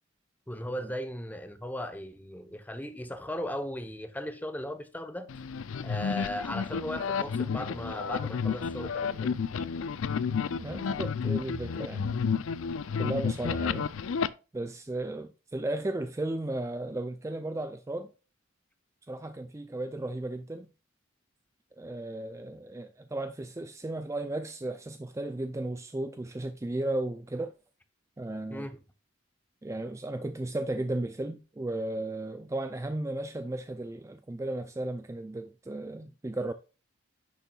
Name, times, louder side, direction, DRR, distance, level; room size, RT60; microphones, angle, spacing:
voice 1, 0.5-5.3 5.8-9.4 28.5-28.8, equal, 10° left, 0.8 m, -37 dB
sound 1, 5.3-14.3, left 6 dB, 80° left, 0.4 m, -31 dB
voice 2, 10.6-12.2 13.0-13.9 14.5-18.1 19.1-20.7 21.8-27.5 28.2-28.7 29.6-36.5, right 2 dB, 15° right, 0.3 m, -35 dB
10.5 x 6.8 x 2.3 m
head